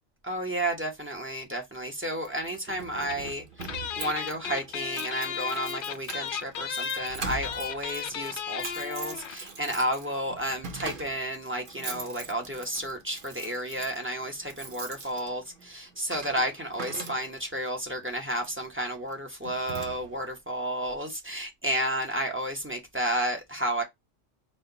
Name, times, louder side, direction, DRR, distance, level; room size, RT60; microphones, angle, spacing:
voice 1, 0.2-23.8, right 1 dB, 15° right, 0.7 m, -32 dB
Keys jangling, 2.2-17.6 18.4-18.6 19.1-19.2 19.4-20.4, right 4 dB, 50° right, 0.8 m, -42 dB
sound 1, 3.1-3.3 3.6-9.5 9.8-9.9 10.0-10.2, left 8 dB, 60° left, 0.6 m, -35 dB
4.2 x 2.2 x 3.8 m
omnidirectional pair, 1.2 m